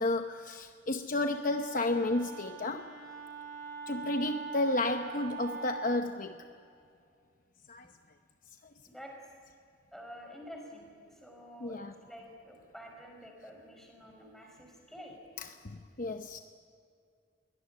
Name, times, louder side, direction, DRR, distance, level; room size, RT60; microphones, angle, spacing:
voice 1, 0.0-2.9 3.9-6.4 7.7-7.9 11.6-11.9 15.4-16.4, left 2 dB, 45° left, 6 dB, 0.9 m, -32 dB
Wind instrument woodwind instrument, 1.2-6.1, right 4 dB, 55° right, 3.3 m, -43 dB
voice 2, 9.9-10.9 11.2-15.2, equal, ahead, 1 dB, 5.3 m, -49 dB
23.0 x 18.0 x 9.7 m, 2.4 s
head